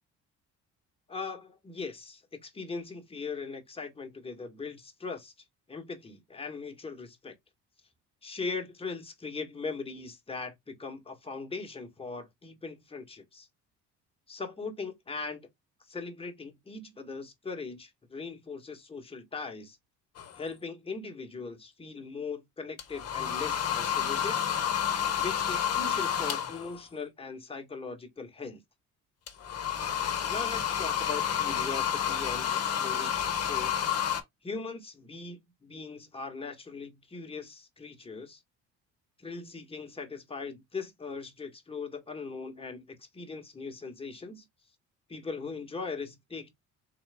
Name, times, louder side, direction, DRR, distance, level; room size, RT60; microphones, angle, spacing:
voice 1, 1.1-5.3 5.7-7.3 8.2-13.5 14.3-15.5 15.9-19.8 20.4-24.4 25.1-28.6 30.3-33.7 34.4-38.4 39.2-44.4 45.1-46.5, left 4 dB, 20° left, 1.4 m, -40 dB
sound 1, 20.2-20.4 22.8-26.8 29.3-34.2, left 9 dB, 55° left, 1.1 m, -30 dB
3.9 x 3.1 x 3.4 m
cardioid pair, 90°, 30 cm